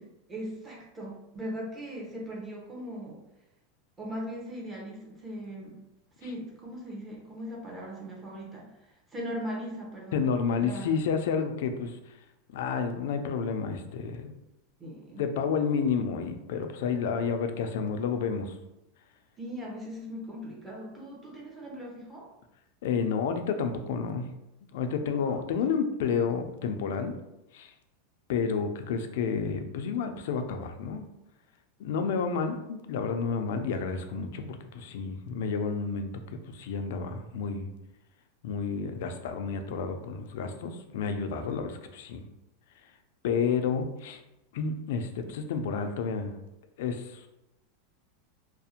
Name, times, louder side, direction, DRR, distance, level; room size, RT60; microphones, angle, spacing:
voice 1, 0.3-3.2 4.0-5.8 6.2-10.2 10.6-10.9 14.8-15.2 19.4-22.3 25.3-25.4, equal, 15° right, -3 dB, 0.6 m, -39 dB
voice 2, 10.1-12.1 12.5-14.3 15.2-18.6 22.8-24.3 24.7-27.1 27.5-27.7 28.3-31.1 31.8-37.7 38.4-42.2 43.2-44.2 44.5-46.3 46.8-47.3, left 5 dB, 70° left, 7 dB, 0.3 m, -30 dB
2.4 x 2.0 x 2.8 m, 0.90 s
supercardioid pair, 155°, 0 cm